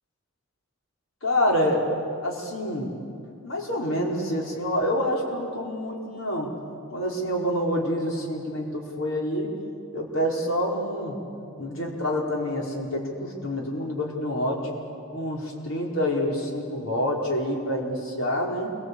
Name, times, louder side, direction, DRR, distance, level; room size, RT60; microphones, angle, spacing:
voice 1, 1.2-1.9 2.2-2.9 3.4-6.5 6.9-9.5 9.9-11.2 11.6-14.7 15.1-18.7, equal, 85° left, -1 dB, 4.8 m, -27 dB
28.0 x 23.5 x 8.5 m, 2.6 s
head